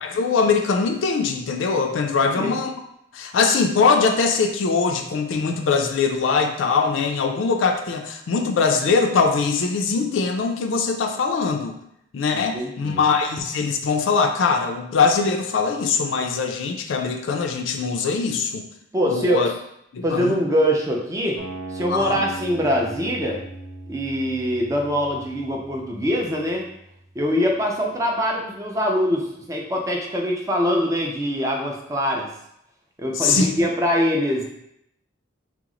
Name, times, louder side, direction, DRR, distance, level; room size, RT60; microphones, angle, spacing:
voice 1, 0.0-2.7 3.1-11.8 12.1-18.7 19.1-19.5 19.9-20.4 21.9-22.2 33.2-33.5, left 5 dB, 65° left, 4 dB, 0.4 m, -22 dB
voice 2, 12.3-13.0 18.9-19.5 20.0-21.4 21.7-23.4 23.9-26.7 27.2-32.3 33.0-34.4, equal, 15° right, 0 dB, 0.4 m, -23 dB
sound 1, 21.4-27.4, right 2 dB, 80° right, 0.8 m, -38 dB
2.9 x 2.0 x 3.6 m, 0.76 s
head